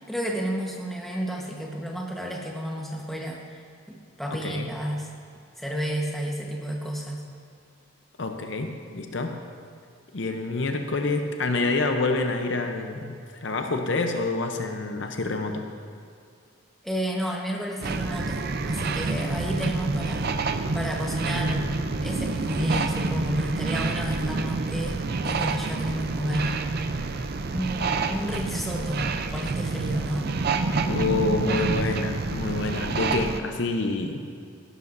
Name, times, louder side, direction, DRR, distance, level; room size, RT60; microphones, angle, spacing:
voice 1, 0.1-5.1 5.6-7.2 16.8-20.3 20.7-26.6 27.5-30.3, equal, ahead, -2 dB, 1.1 m, -32 dB
voice 2, 8.2-9.4 10.1-15.7 30.9-34.3, left 3 dB, 60° left, 5 dB, 0.7 m, -27 dB
sound 1, 17.8-33.4, right 3 dB, 50° right, 0.5 m, -28 dB
16.0 x 12.0 x 2.6 m, 2.3 s
head